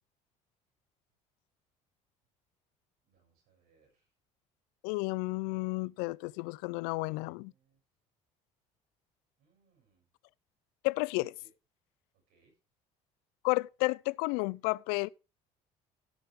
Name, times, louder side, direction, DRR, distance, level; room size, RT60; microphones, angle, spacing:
voice 1, 3.0-4.0 7.1-7.8 9.4-10.0 11.4-11.5 12.3-12.5, right 4 dB, 70° right, 7.0 m, -70 dB
voice 2, 4.8-7.5 10.8-11.3 13.4-15.1, left 25 dB, 80° left, 0.4 m, -32 dB
15.5 x 6.8 x 3.5 m
supercardioid pair, 75°, 16 cm